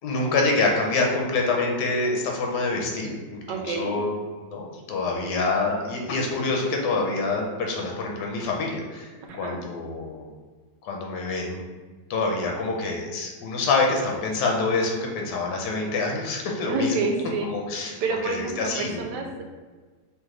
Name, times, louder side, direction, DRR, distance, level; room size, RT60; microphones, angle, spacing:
voice 1, 0.0-4.1 4.5-10.3 10.8-11.6 12.1-17.1 17.4-18.0 18.3-19.0, left 3 dB, 75° left, 0 dB, 1.3 m, -26 dB
voice 2, 3.5-3.9 9.2-9.6 16.7-17.5 17.8-19.4, right 3 dB, 85° right, 3 dB, 1.3 m, -28 dB
3.3 x 3.2 x 3.7 m, 1.4 s
omnidirectional pair, 1.8 m